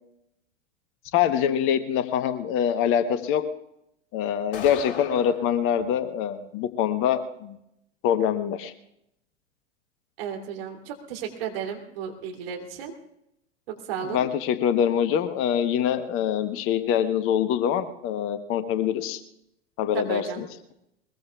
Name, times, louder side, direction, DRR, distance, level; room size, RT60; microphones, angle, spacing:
voice 1, 1.1-3.4 4.1-7.6 8.0-8.7 14.1-19.2 19.8-20.5, left 9 dB, 35° left, 10 dB, 1.1 m, -24 dB
sound 1, 4.5-5.5, left 7 dB, 60° left, 3.0 m, -36 dB
voice 2, 10.2-12.9 13.7-14.3 19.9-20.4, right 8 dB, 55° right, 1 dB, 3.0 m, -34 dB
21.5 x 21.0 x 2.4 m, 0.81 s
figure-of-eight pair, 90°, 36 cm